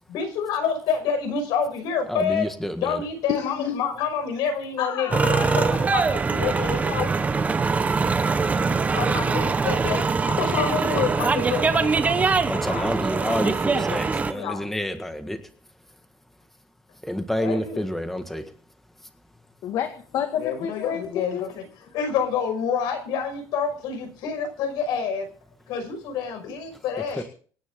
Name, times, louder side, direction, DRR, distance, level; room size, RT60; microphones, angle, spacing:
voice 1, 0.1-2.5 2.8-7.1 8.9-12.9 13.3-14.7 17.3-17.8 20.3-25.2 25.7-27.2, left 6 dB, 75° left, 5 dB, 5.7 m, -28 dB
voice 2, 2.1-3.0 12.5-15.4 17.1-18.4, equal, 5° left, 6 dB, 1.6 m, -28 dB
voice 3, 3.3-3.8 4.8-5.9 19.6-21.5 27.1-27.2, left 9 dB, 55° left, 6 dB, 1.9 m, -30 dB
sound 1, 5.1-14.3, right 4 dB, 20° right, 1.1 m, -23 dB
25.5 x 10.0 x 3.7 m, 0.43 s
cardioid pair, 145°, 7 cm